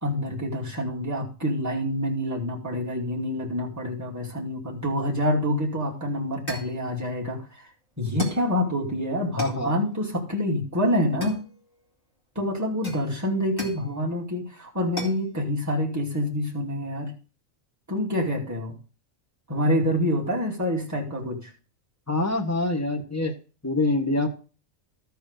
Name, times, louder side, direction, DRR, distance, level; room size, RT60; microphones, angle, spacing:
voice 1, 0.0-7.7 8.0-11.4 12.3-17.1 17.9-18.8 19.5-21.5, left 1 dB, 10° right, -3 dB, 2.5 m, -27 dB
sound 1, 5.8-5.9 6.5-6.8 8.2-8.5 9.4-9.7 11.2-11.9 12.8-13.9 15.0-15.3, left 1 dB, 40° left, 2.5 m, -36 dB
voice 2, 9.4-9.7 22.1-23.3 23.6-24.3, left 2 dB, 10° left, 2 dB, 1.3 m, -25 dB
13.0 x 4.6 x 6.6 m, 0.35 s
omnidirectional pair, 1.4 m